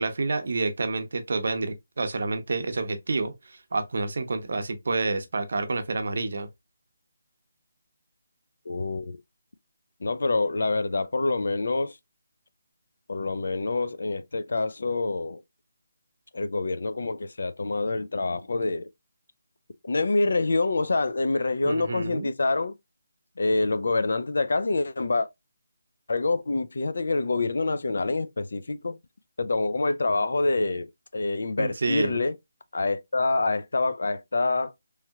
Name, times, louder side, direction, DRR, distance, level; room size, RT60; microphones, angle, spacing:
voice 1, 0.0-6.5 21.6-22.3 31.6-32.2, right 3 dB, 55° right, 0.6 m, -29 dB
voice 2, 8.7-9.2 10.0-12.0 13.1-15.4 16.3-18.9 19.8-22.7 23.4-25.3 26.1-29.0 29.4-30.9 31.1-32.4 32.7-34.7, left 3 dB, 65° left, 0.4 m, -26 dB
3.1 x 2.8 x 2.3 m
hypercardioid pair, 175°, 0 cm